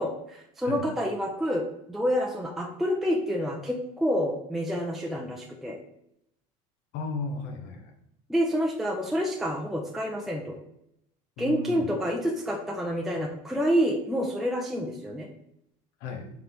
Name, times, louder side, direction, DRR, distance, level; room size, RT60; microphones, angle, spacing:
voice 1, 0.0-5.8 8.3-10.6 11.4-15.3, equal, ahead, -1 dB, 0.5 m, -28 dB
voice 2, 6.9-7.9 11.4-12.0 16.0-16.3, left 3 dB, 70° left, 4 dB, 0.9 m, -35 dB
3.9 x 3.5 x 2.9 m, 0.78 s
supercardioid pair, 105°, 17 cm